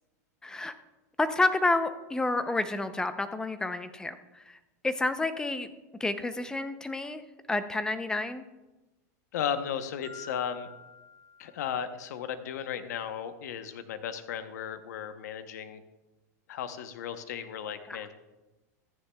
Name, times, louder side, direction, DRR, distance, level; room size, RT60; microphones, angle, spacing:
voice 1, 0.4-0.7 1.2-4.6 4.8-5.7 6.0-7.2 7.5-8.4 17.9-18.0, left 2 dB, 10° left, 10 dB, 0.5 m, -29 dB
voice 2, 9.3-10.7 11.4-15.8 16.5-18.1, left 8 dB, 80° left, 9 dB, 0.8 m, -35 dB
Marimba xylophone, 10.0-12.2, left 4 dB, 55° left, 3.1 m, -50 dB
14.5 x 9.9 x 2.3 m, 1.1 s
supercardioid pair, 135°, 9 cm